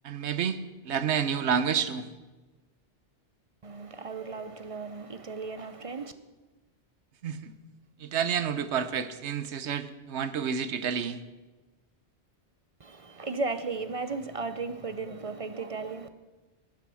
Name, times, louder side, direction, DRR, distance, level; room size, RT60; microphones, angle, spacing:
voice 1, 0.0-0.6 0.8-2.1 7.2-7.5 8.0-11.2, right 7 dB, 70° right, 1.1 m, -29 dB
voice 2, 3.6-6.1 12.8-16.1, right 3 dB, 35° right, 0.6 m, -35 dB
12.0 x 10.5 x 6.3 m
omnidirectional pair, 1.2 m